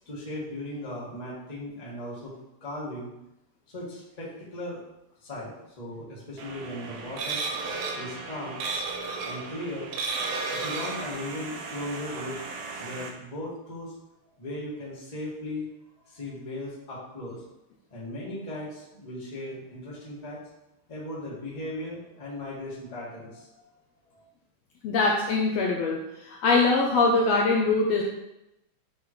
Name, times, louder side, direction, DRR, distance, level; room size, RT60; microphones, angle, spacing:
voice 1, 0.0-2.3 2.6-3.1 3.7-4.8 5.2-7.4 8.0-8.6 9.2-9.9 10.5-12.4 12.8-13.9 14.4-15.7 16.1-17.4 17.9-20.4 20.9-23.7 24.1-24.2, left 1 dB, 20° left, -6 dB, 1.3 m, -37 dB
sound 1, 6.4-13.1, right 4 dB, 70° right, 1.6 m, -34 dB
voice 2, 24.8-28.0, left 3 dB, 75° left, -1 dB, 1.6 m, -23 dB
8.4 x 3.8 x 3.1 m, 0.87 s
omnidirectional pair, 3.4 m